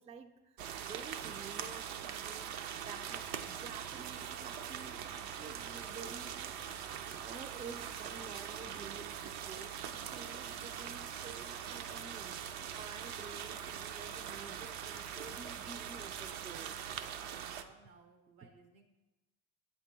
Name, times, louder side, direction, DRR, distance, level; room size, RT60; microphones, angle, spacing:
voice 1, 0.0-12.4 12.7-16.9, right 5 dB, 15° right, 8 dB, 0.4 m, -51 dB
sound 1, 0.6-17.6, right 9 dB, 65° right, 0.6 m, -42 dB
sound 2, 3.1-16.3, left 6 dB, 55° left, 0.5 m, -61 dB
voice 2, 17.1-18.8, right 4 dB, 80° right, 5 dB, 0.9 m, -60 dB
7.9 x 3.0 x 4.5 m, 1.1 s
hypercardioid pair, 60°, 40 cm